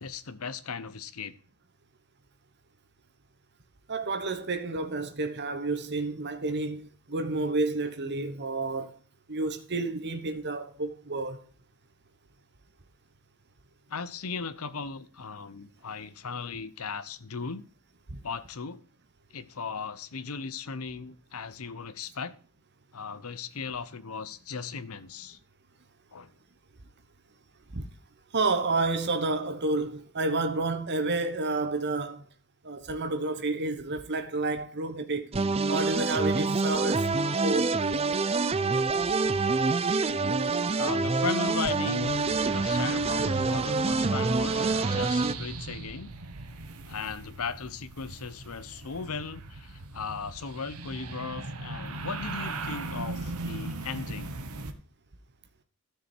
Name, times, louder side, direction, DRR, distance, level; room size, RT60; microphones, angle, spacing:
voice 1, 0.0-1.3 13.9-17.7 18.2-18.8 19.3-22.4 22.9-25.4 26.1-26.3 40.8-42.2 42.5-46.1 46.9-54.4, left 5 dB, 75° left, 0.9 m, -37 dB
voice 2, 3.9-9.0 9.3-11.4 18.1-18.2 27.7-27.9 28.3-32.3 32.6-35.3 35.7-37.1 37.4-37.8, right 3 dB, 50° right, 1.2 m, -30 dB
sound 1, 35.3-45.3, right 3 dB, 25° right, 0.5 m, -26 dB
sound 2, 42.0-54.7, right 3 dB, 80° right, 1.3 m, -39 dB
12.5 x 6.9 x 4.6 m
head